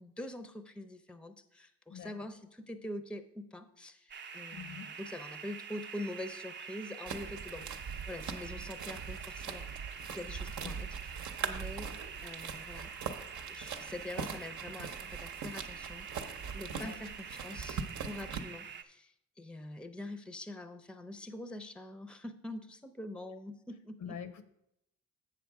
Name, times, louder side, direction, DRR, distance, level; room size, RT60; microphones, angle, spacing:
voice 1, 0.0-9.7 10.1-11.9 12.2-13.2 13.5-24.2, left 1 dB, 5° left, 9 dB, 0.6 m, -45 dB
sound 1, 4.1-18.8, right 6 dB, 35° right, 0.6 m, -46 dB
voice 2, 4.5-4.9 10.6-10.8 16.7-17.0 24.0-24.5, left 8 dB, 70° left, 11 dB, 0.8 m, -45 dB
sound 2, 7.1-18.4, right 6 dB, 70° right, 0.8 m, -42 dB
7.6 x 6.5 x 4.7 m, 0.80 s
cardioid pair, 90°, 30 cm